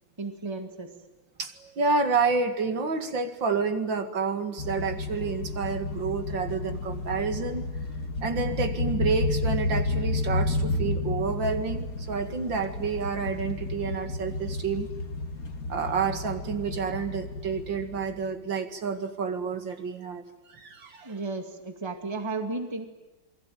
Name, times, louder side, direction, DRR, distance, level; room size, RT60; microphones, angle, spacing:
voice 1, 0.2-0.9 21.0-22.9, right 3 dB, 15° right, 6 dB, 2.1 m, -34 dB
voice 2, 1.4-7.7 8.2-14.9 15.7-21.1, right 5 dB, 65° right, 8 dB, 2.8 m, -29 dB
sound 1, 4.6-18.4, left 2 dB, 45° left, 2.3 m, -31 dB
28.0 x 21.5 x 9.3 m, 1.1 s
omnidirectional pair, 2.2 m